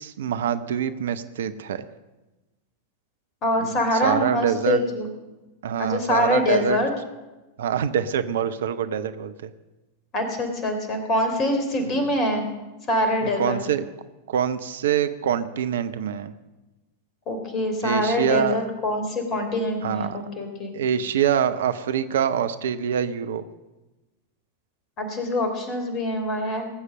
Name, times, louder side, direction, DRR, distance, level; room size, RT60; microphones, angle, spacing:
voice 1, 0.0-1.8 3.6-4.8 5.6-6.8 7.6-9.5 12.0-12.1 13.2-13.9 14.3-16.3 17.8-18.6 19.8-20.2 20.7-23.4, right 8 dB, 60° right, 12 dB, 0.7 m, -25 dB
voice 2, 3.4-5.1 5.8-6.9 10.1-12.4 12.9-13.6 17.3-20.7 25.0-26.7, left 1 dB, 35° left, 6 dB, 3.4 m, -24 dB
18.5 x 8.1 x 7.7 m, 1.1 s
figure-of-eight pair, 90°, 0 cm